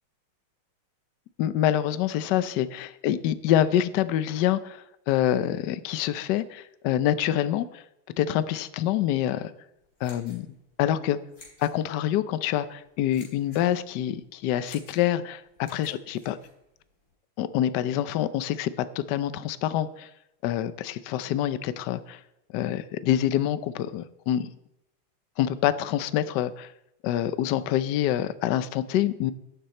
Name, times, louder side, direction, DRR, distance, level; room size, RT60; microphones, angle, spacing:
voice 1, 1.4-7.8 8.2-9.5 10.0-10.5 10.8-11.2 11.6-16.4 17.4-20.1 20.4-22.2 22.5-24.5 25.4-26.7 27.0-29.3, left 11 dB, 70° left, 13 dB, 1.1 m, -26 dB
sound 1, 9.8-17.1, left 2 dB, 50° left, 4.6 m, -55 dB
12.0 x 9.5 x 4.3 m, 0.83 s
omnidirectional pair, 2.3 m